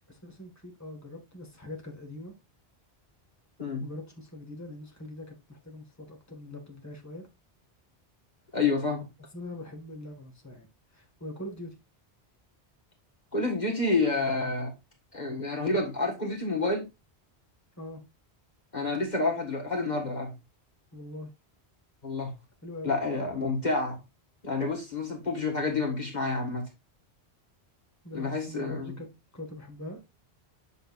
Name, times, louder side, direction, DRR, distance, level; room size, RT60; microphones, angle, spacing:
voice 1, 0.1-2.3 3.8-7.3 9.3-10.7 10.9-11.7 17.8-18.0 20.9-21.3 22.6-23.0 28.0-29.1 29.3-30.0, left 1 dB, 15° left, 1.8 m, -42 dB
voice 2, 8.5-9.1 13.3-14.7 15.1-16.9 18.7-20.3 22.0-22.3 22.8-24.0 24.4-26.7 28.1-28.9, left 3 dB, 40° left, 1.8 m, -29 dB
8.4 x 6.5 x 2.5 m
omnidirectional pair, 1.1 m